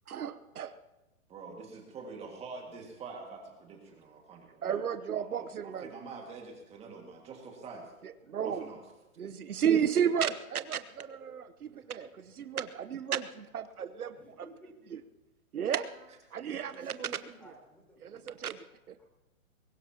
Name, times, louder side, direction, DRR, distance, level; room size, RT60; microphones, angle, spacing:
voice 1, 0.1-0.8 4.6-5.9 8.0-8.6 9.2-14.2 14.9-15.0 15.5-15.9 16.3-17.2 18.0-18.6 18.9-19.0, right 8 dB, 90° right, 12 dB, 1.0 m, -33 dB
voice 2, 1.3-4.8 5.1-7.9 8.4-8.8 15.6-15.7, right 4 dB, 15° right, 1 dB, 2.0 m, -46 dB
voice 3, 11.6-12.4 14.1-15.0 16.6-18.6 19.0-19.1, equal, 5° left, -2 dB, 3.8 m, -57 dB
22.0 x 18.0 x 2.9 m, 0.97 s
hypercardioid pair, 145°, 43 cm